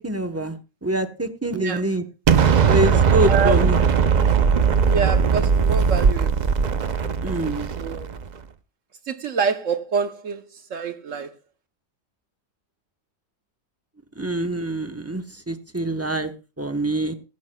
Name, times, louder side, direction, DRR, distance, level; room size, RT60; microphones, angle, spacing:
voice 1, 0.0-2.0 2.6-3.8 7.2-7.7 14.2-16.3 16.6-17.1, right 1 dB, 15° right, 0.6 m, -25 dB
voice 2, 1.5-1.8 3.3-3.6 4.9-6.5 7.7-8.1 9.1-11.3, right 5 dB, 60° right, 1.0 m, -26 dB
Explosion, 2.3-8.3, right 6 dB, 85° right, 0.4 m, -19 dB
16.0 x 15.0 x 2.2 m
omnidirectional pair, 1.7 m